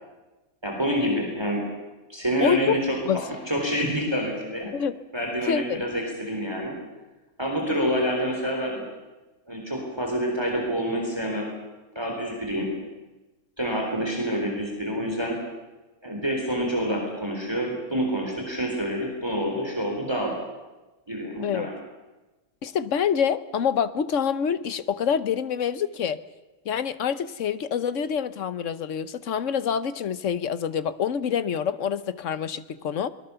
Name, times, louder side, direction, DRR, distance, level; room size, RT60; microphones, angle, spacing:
voice 1, 0.6-1.6 2.1-4.7 5.1-6.8 7.4-8.8 9.5-11.5 12.0-12.7 13.6-15.4 16.0-20.3 21.1-21.8, equal, 20° right, 0 dB, 3.8 m, -27 dB
voice 2, 2.4-2.8 3.1-3.2 4.7-5.0 5.5-5.8 21.4-21.7 22.6-26.2 26.6-33.1, left 7 dB, 65° left, 14 dB, 1.2 m, -26 dB
23.5 x 20.5 x 7.0 m, 1.1 s
omnidirectional pair, 1.5 m